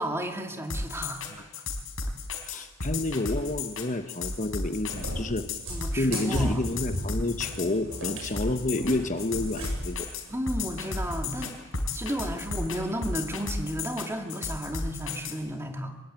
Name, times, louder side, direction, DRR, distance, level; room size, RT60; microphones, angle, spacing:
voice 1, 0.0-1.5 2.5-2.7 5.7-6.6 10.3-11.5 11.9-16.0, equal, 10° right, 4 dB, 2.3 m, -33 dB
sound 1, 0.7-15.3, left 3 dB, 75° left, 4.5 m, -33 dB
voice 2, 2.5-5.5 5.9-10.1, left 2 dB, 35° left, 8 dB, 1.1 m, -29 dB
Cat, 4.9-10.0, equal, 75° right, 7.7 m, -35 dB
24.0 x 22.0 x 9.1 m, 1.2 s
head